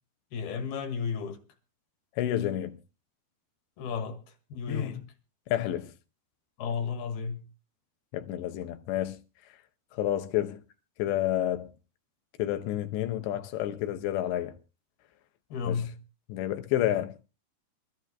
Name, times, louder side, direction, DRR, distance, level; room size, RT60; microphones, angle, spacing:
voice 1, 0.3-1.4 3.8-4.2 4.5-5.0 6.6-7.4 15.5-15.9, left 6 dB, 65° left, 3.6 m, -33 dB
voice 2, 2.2-2.8 4.7-5.1 5.5-5.9 8.1-9.2 9.9-10.6 11.0-11.7 12.4-14.6 15.6-15.9 16.3-17.2, left 12 dB, 90° left, 3.1 m, -30 dB
26.0 x 14.5 x 2.2 m
omnidirectional pair, 4.9 m